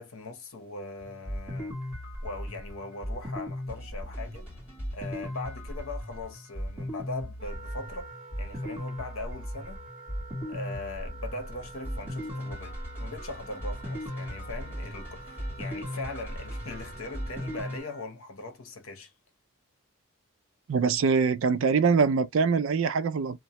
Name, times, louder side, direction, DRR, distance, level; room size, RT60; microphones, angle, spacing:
voice 1, 0.0-1.8 2.2-4.5 4.9-8.1 8.4-9.8 10.5-19.1, left 2 dB, 70° left, 0.9 m, -40 dB
sound 1, 1.0-17.8, equal, 10° right, 1.5 m, -37 dB
Wind instrument woodwind instrument, 7.4-18.1, right 3 dB, 30° right, 0.8 m, -48 dB
voice 2, 20.7-23.4, right 5 dB, 65° right, 0.4 m, -23 dB
2.8 x 2.2 x 2.9 m
head